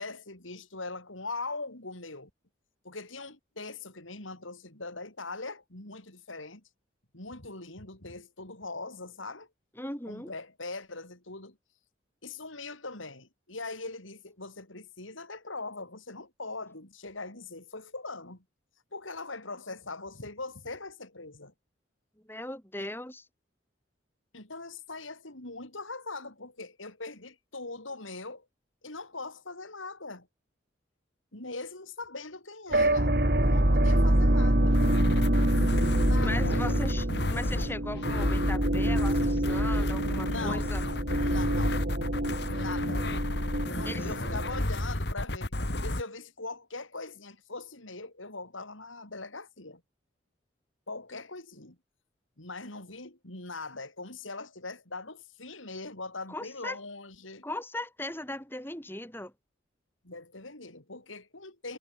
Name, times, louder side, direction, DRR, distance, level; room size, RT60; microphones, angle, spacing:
voice 1, 0.0-2.3 2.8-6.6 7.1-9.5 10.1-11.6 12.2-18.4 18.9-21.5 22.8-22.9 24.3-28.5 28.8-30.3 31.3-34.8 35.9-36.8 40.3-40.8 41.1-41.9 42.4-43.1 43.6-45.5 45.8-49.8 50.9-51.8 52.4-57.5 60.0-61.8, left 3 dB, 90° left, 6.4 m, -41 dB
voice 2, 9.8-10.3 22.3-23.3 36.2-40.8 43.8-44.1 56.3-56.8 57.4-59.3, left 1 dB, 10° left, 5.7 m, -38 dB
sound 1, 32.7-44.6, right 1 dB, 50° right, 2.9 m, -26 dB
sound 2, 34.6-46.0, left 1 dB, 55° left, 2.3 m, -32 dB
head